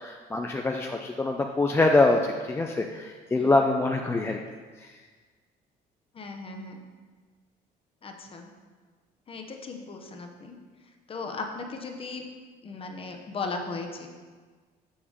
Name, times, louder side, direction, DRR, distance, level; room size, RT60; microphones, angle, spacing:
voice 1, 0.0-4.4, left 2 dB, 15° left, 2 dB, 0.3 m, -24 dB
voice 2, 6.1-6.8 8.0-8.5 9.3-10.6 11.1-12.3 12.6-14.1, left 3 dB, 35° left, 4 dB, 0.8 m, -37 dB
7.1 x 4.8 x 3.6 m, 1.5 s
cardioid pair, 110°, 17 cm